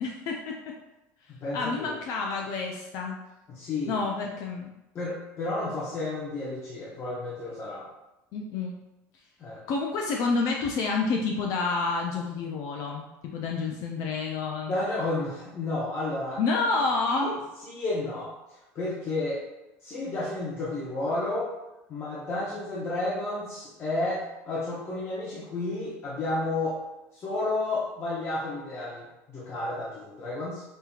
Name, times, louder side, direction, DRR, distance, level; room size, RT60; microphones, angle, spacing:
voice 1, 0.0-0.6 1.5-3.2 3.9-4.7 8.3-8.8 9.7-14.7 16.4-17.3, left 4 dB, 55° left, 0 dB, 0.4 m, -29 dB
voice 2, 1.3-1.9 3.5-4.0 4.9-7.9 9.4-9.6 14.7-16.4 17.0-17.3 17.6-19.4 19.8-21.5 21.9-26.8 27.1-30.6, left 2 dB, 40° left, -7 dB, 0.9 m, -31 dB
5.4 x 2.8 x 2.4 m, 0.98 s
supercardioid pair, 125°, 7 cm